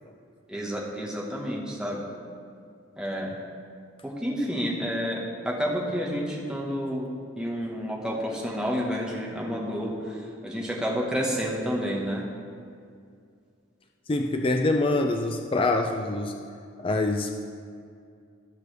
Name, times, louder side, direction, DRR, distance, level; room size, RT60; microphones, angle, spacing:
voice 1, 0.5-2.0 3.0-3.3 4.0-7.1 7.4-10.2 10.4-12.2, equal, 5° right, -4 dB, 1.4 m, -30 dB
voice 2, 14.1-16.4 16.8-17.3, left 2 dB, 25° left, 4 dB, 0.4 m, -25 dB
19.0 x 6.7 x 3.4 m, 2.3 s
head